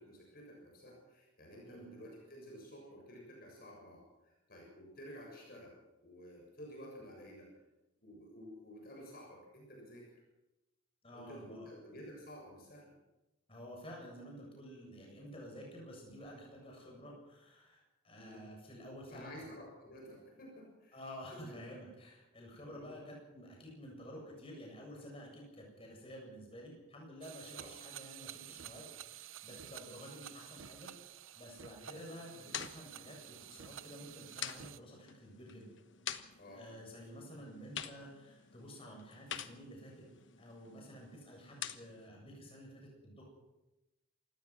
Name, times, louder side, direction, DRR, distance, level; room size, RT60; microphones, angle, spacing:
voice 1, 0.0-7.5 8.0-10.1 11.1-13.0 18.2-18.5 19.1-21.0 21.3-21.7 22.6-23.0 27.5-27.7 36.4-36.6, equal, 45° left, -1 dB, 7.1 m, -52 dB
voice 2, 11.0-11.7 13.5-19.3 20.9-35.7 36.2-40.1 40.4-43.2, equal, 25° left, -1 dB, 7.9 m, -51 dB
sound 1, 27.2-34.8, right 11 dB, 75° right, 0.8 m, -51 dB
sound 2, 31.9-42.1, left 9 dB, 60° left, 1.2 m, -48 dB
28.0 x 17.0 x 6.2 m, 0.99 s
head